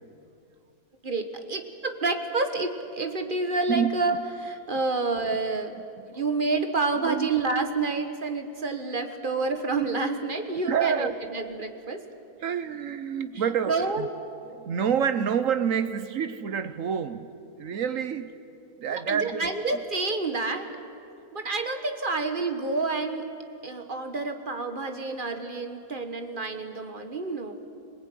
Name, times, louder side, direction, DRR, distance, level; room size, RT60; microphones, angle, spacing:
voice 1, 1.0-5.7 6.1-12.0 13.7-14.1 19.1-20.7 21.3-23.3 23.6-27.6, right 3 dB, 35° right, 6 dB, 1.6 m, -29 dB
voice 2, 3.7-4.1 6.0-6.2 7.0-7.3 10.7-11.2 12.4-14.1 14.5-17.3 17.6-18.3 18.8-19.5, right 7 dB, 70° right, 11 dB, 1.2 m, -28 dB
25.5 x 19.0 x 9.2 m, 2.6 s
omnidirectional pair, 1.5 m